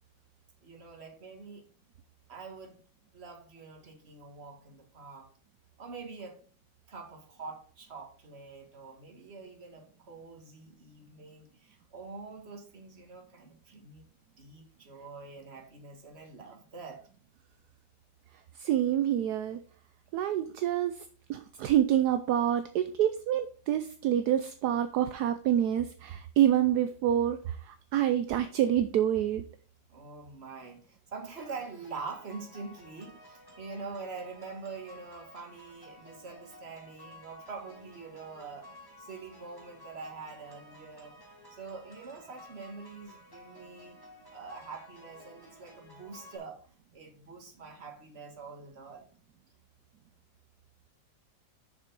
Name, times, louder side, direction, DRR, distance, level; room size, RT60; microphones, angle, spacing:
voice 1, 0.6-1.7 2.3-2.8 3.1-5.3 5.8-6.4 6.9-14.0 14.4-17.0 29.9-41.2 41.5-44.0 44.3-49.1, right 4 dB, 35° right, 1.8 m, -45 dB
voice 2, 18.6-19.6 20.1-21.0 21.3-29.4, right 11 dB, 70° right, 1.0 m, -27 dB
sound 1, 31.4-46.4, left 1 dB, 15° left, 1.3 m, -54 dB
6.7 x 6.1 x 5.2 m
omnidirectional pair, 2.0 m